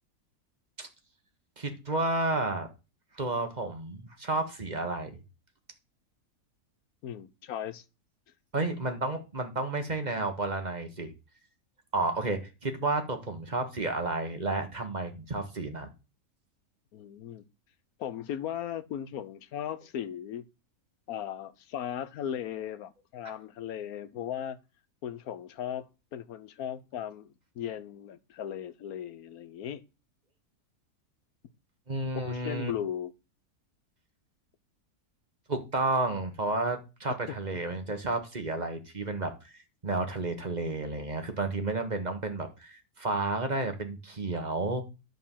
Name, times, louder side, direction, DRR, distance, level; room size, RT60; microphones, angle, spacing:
voice 1, 1.6-2.7 3.1-5.1 8.5-11.1 11.9-15.9 31.9-32.7 35.5-44.8, right 2 dB, 30° right, 1.4 m, -31 dB
voice 2, 7.0-7.8 16.9-17.4 18.0-20.4 21.1-24.6 25.0-25.9 26.1-29.8 32.1-33.1 37.1-37.4, left 10 dB, 75° left, 1.2 m, -37 dB
10.5 x 3.8 x 7.3 m
omnidirectional pair, 1.6 m